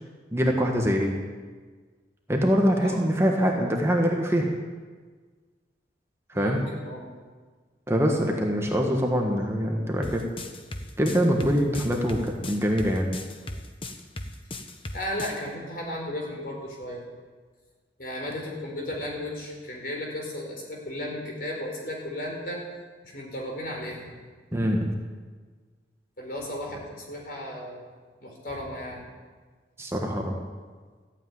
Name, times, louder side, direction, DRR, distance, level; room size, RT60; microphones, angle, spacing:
voice 1, 0.3-1.1 2.3-4.5 6.3-6.6 7.9-10.2 11.0-13.1 24.5-24.9 29.8-30.4, equal, 15° right, 1 dB, 1.5 m, -24 dB
voice 2, 6.3-7.0 14.9-17.0 18.0-22.6 23.0-24.1 26.2-27.9 28.2-29.1, left 1 dB, 55° left, -1 dB, 4.7 m, -34 dB
sound 1, 10.0-15.4, left 2 dB, 30° left, 1.1 m, -36 dB
14.0 x 9.1 x 9.5 m, 1.5 s
head